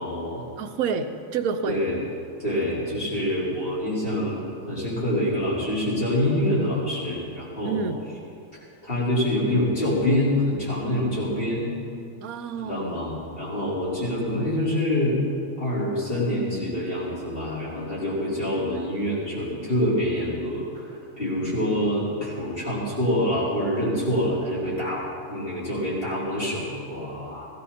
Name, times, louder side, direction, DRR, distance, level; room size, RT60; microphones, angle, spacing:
voice 1, 0.0-0.4 1.7-2.0 2.4-7.8 8.8-11.7 12.6-15.1 15.6-27.5, left 1 dB, 40° left, -8 dB, 4.9 m, -26 dB
voice 2, 0.6-1.8 7.6-8.0 12.2-13.0 21.4-21.5, right 6 dB, 80° right, 8 dB, 1.3 m, -29 dB
17.0 x 15.5 x 4.3 m, 2.4 s
omnidirectional pair, 1.5 m